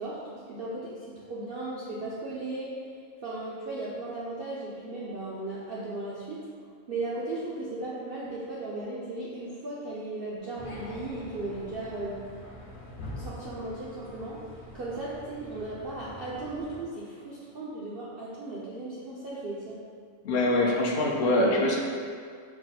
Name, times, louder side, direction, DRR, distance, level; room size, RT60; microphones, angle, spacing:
voice 1, 0.0-2.7 3.2-6.5 6.9-12.2 13.1-14.4 14.7-19.8, right 2 dB, 75° right, -7 dB, 0.5 m, -36 dB
sound 1, 10.6-16.8, left 1 dB, 60° left, 1.1 m, -44 dB
voice 2, 20.2-21.8, left 1 dB, 80° left, -2 dB, 0.5 m, -24 dB
4.7 x 2.1 x 4.0 m, 2.1 s
omnidirectional pair, 1.6 m